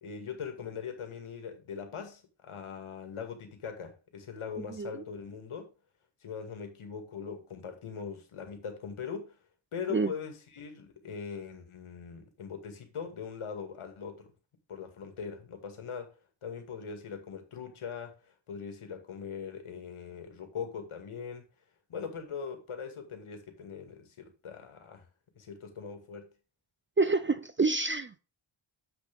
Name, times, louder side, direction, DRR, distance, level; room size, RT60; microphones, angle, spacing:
voice 1, 0.0-5.7 6.2-9.3 9.7-14.3 14.7-16.1 16.4-18.2 18.5-21.4 21.9-25.1 25.4-26.3, left 6 dB, 75° left, 2.2 m, -41 dB
voice 2, 27.0-28.2, right 3 dB, 25° right, 0.4 m, -27 dB
7.6 x 6.5 x 3.5 m
wide cardioid pair, 145°, 49 cm